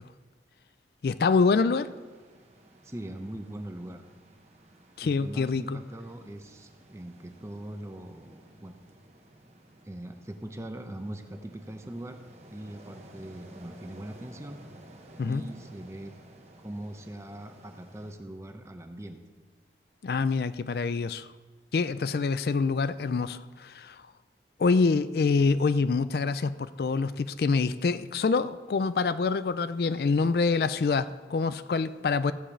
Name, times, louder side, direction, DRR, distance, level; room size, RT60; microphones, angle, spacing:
voice 1, 1.0-1.9 5.0-5.8 15.2-15.4 20.0-21.3 21.7-24.0 24.6-32.3, left 4 dB, 60° left, 14 dB, 0.4 m, -26 dB
sound 1, 1.8-18.1, right 1 dB, 40° right, 1.2 m, -54 dB
voice 2, 2.8-4.0 5.0-8.8 9.8-12.2 12.5-14.6 15.2-16.1 16.6-19.2, right 1 dB, 15° right, 6 dB, 0.7 m, -41 dB
15.0 x 5.1 x 7.3 m, 1.4 s
head